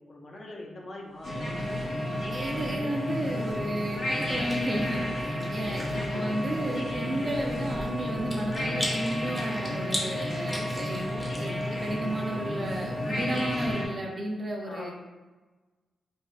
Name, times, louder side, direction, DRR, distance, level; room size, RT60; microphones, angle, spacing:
voice 1, 0.0-1.4 5.9-6.5 14.7-14.9, left 1 dB, 40° left, -1 dB, 0.6 m, -42 dB
sound 1, 1.1-7.7, right 1 dB, 85° right, 0.6 m, -48 dB
sound 2, 1.2-13.9, left 1 dB, 70° left, 0.9 m, -32 dB
voice 2, 2.3-14.9, right 1 dB, 40° right, 0 dB, 0.5 m, -33 dB
Chewing mastication, 3.5-13.7, equal, 5° left, 0.7 m, -41 dB
3.3 x 2.5 x 2.3 m, 1.2 s
wide cardioid pair, 115°, 0 cm